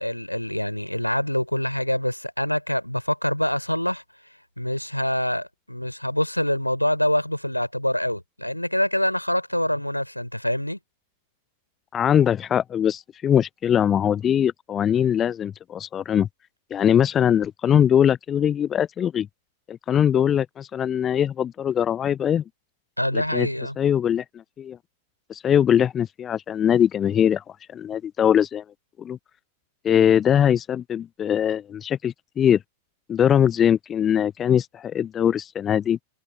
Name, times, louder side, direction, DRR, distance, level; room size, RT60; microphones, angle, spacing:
voice 1, 0.0-4.0 4.6-10.8 23.0-23.8, left 1 dB, 90° left, 4.2 m, -25 dB
voice 2, 11.9-16.3 16.7-19.3 19.7-22.4 23.1-23.5 23.8-24.2 24.6-24.8 25.3-28.6 29.0-29.2 29.8-32.6 33.1-36.0, left 9 dB, 25° left, 0.4 m, -21 dB
figure-of-eight pair, 90°, 0 cm